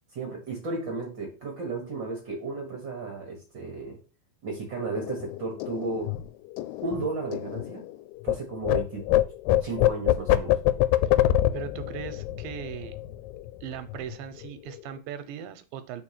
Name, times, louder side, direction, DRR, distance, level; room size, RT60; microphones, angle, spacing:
voice 1, 0.1-4.0 4.4-6.1 6.8-7.8 8.2-9.1 9.6-10.6, right 3 dB, 55° right, 1 dB, 1.3 m, -34 dB
sound 1, 5.0-8.4 8.6-13.6 13.9-14.2 14.4-15.0, left 13 dB, 85° left, 2.2 m, -25 dB
voice 2, 11.5-13.0 13.6-16.0, right 9 dB, 85° right, 11 dB, 2.4 m, -38 dB
4.9 x 4.5 x 5.8 m, 0.33 s
omnidirectional pair, 4.1 m